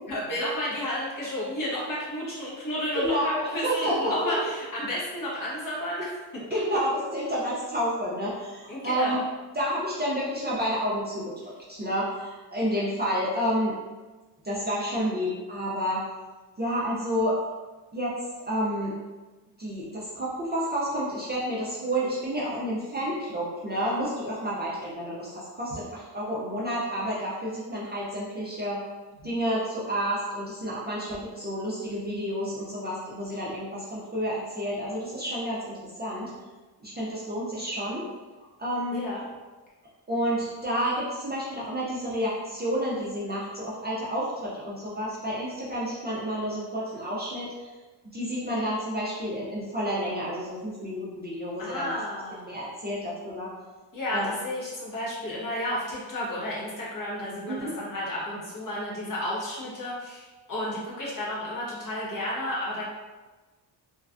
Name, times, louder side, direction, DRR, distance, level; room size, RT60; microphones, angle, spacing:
voice 1, 0.1-6.8 8.7-9.1 29.2-29.3 38.9-39.2 51.6-52.5 53.9-62.8, left 1 dB, 45° left, -6 dB, 1.0 m, -32 dB
voice 2, 2.9-4.3 6.5-9.2 9.5-11.3 11.7-13.7 14.4-16.0 16.6-17.4 17.9-18.2 18.5-18.9 19.6-28.8 29.2-36.3 36.8-38.1 38.6-39.0 40.1-47.7 48.1-51.9 52.4-53.5 54.1-54.3 57.5-57.7, equal, 25° right, -7 dB, 0.5 m, -30 dB
3.2 x 2.3 x 2.4 m, 1.3 s
cardioid pair, 125°, 45 cm